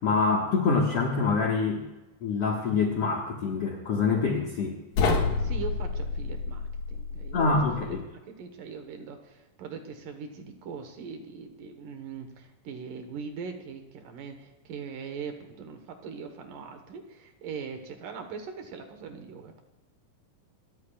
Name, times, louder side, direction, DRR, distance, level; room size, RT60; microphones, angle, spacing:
voice 1, 0.0-1.8 2.2-4.8 7.3-8.0, left 4 dB, 50° left, -1 dB, 2.1 m, -25 dB
sound 1, 4.9-8.0, left 4 dB, 70° left, 3.4 m, -29 dB
voice 2, 5.4-7.4 7.8-8.0 8.4-19.6, right 5 dB, 70° right, 6 dB, 2.8 m, -41 dB
28.0 x 14.0 x 2.4 m, 1.1 s
omnidirectional pair, 4.2 m